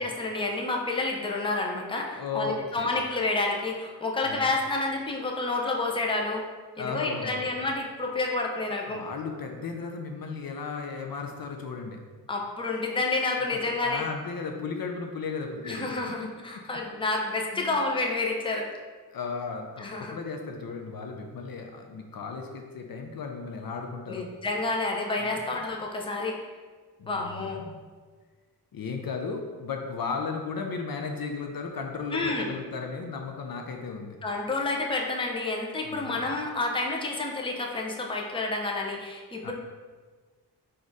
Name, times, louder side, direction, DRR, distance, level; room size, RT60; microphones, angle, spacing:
voice 1, 0.0-6.4 6.8-9.0 12.3-14.0 15.6-18.7 19.8-20.1 24.1-26.4 27.1-27.6 32.1-32.5 34.2-39.5, left 3 dB, 15° left, 0 dB, 0.5 m, -29 dB
voice 2, 2.2-3.0 4.2-4.5 6.8-7.5 8.9-12.0 13.5-15.9 17.5-17.8 19.1-24.3 25.2-25.4 27.0-27.8 28.7-34.2 35.8-36.3 39.4-39.5, left 5 dB, 60° left, 3 dB, 0.5 m, -35 dB
4.1 x 2.5 x 4.6 m, 1.4 s
wide cardioid pair, 90°, 41 cm